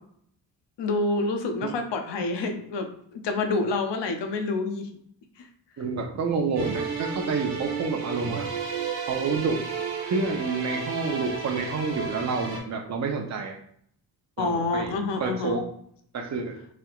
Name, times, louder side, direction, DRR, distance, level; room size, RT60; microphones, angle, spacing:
voice 1, 0.8-4.9 5.4-5.5 14.4-15.6, left 3 dB, 80° left, 5 dB, 0.7 m, -28 dB
voice 2, 5.8-8.5 9.1-9.6 10.1-13.6 14.4-14.9 15.2-15.7 16.1-16.6, right 4 dB, 40° right, 2 dB, 0.7 m, -28 dB
sound 1, 6.6-12.6, right 5 dB, 65° right, 1.1 m, -32 dB
3.3 x 2.8 x 2.4 m, 0.66 s
cardioid pair, 75°, 42 cm